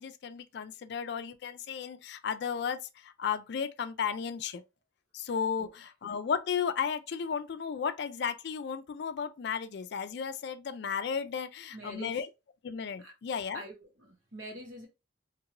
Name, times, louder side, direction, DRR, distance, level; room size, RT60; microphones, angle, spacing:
voice 1, 0.0-4.6 5.1-12.3 12.6-13.6, left 6 dB, 60° left, 0.3 m, -34 dB
voice 2, 11.7-12.2 13.0-13.1 13.5-14.9, equal, 80° right, 1.4 m, -45 dB
2.9 x 2.9 x 2.5 m
head